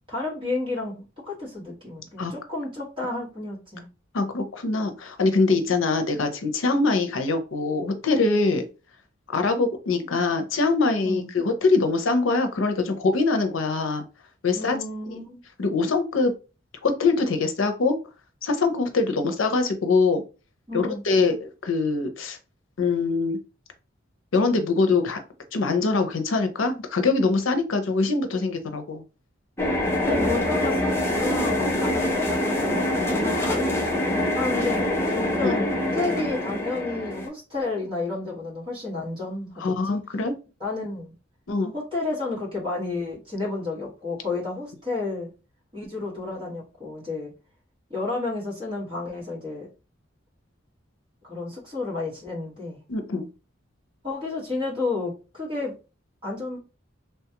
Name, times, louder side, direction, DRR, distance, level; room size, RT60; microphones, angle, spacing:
voice 1, 0.1-3.9 11.0-11.3 14.5-15.4 20.7-21.0 30.0-33.6 34.3-34.9 35.1-40.0 40.6-41.1 41.7-45.3 45.7-47.3 47.9-49.7 51.2-52.8 54.0-55.7 56.2-56.6, left 2 dB, 25° right, -5 dB, 1.4 m, -31 dB
voice 2, 4.1-8.6 9.3-14.0 14.4-14.8 15.6-16.3 16.8-18.0 18.4-20.2 20.7-22.4 22.8-23.4 24.3-25.2 25.5-29.0 35.4-35.5 39.6-40.3 41.5-41.7 52.9-53.3, left 3 dB, 85° left, 7 dB, 0.6 m, -23 dB
sound 1, 29.6-37.3, left 1 dB, 15° left, 0.6 m, -25 dB
3.1 x 2.3 x 2.8 m, 0.32 s
head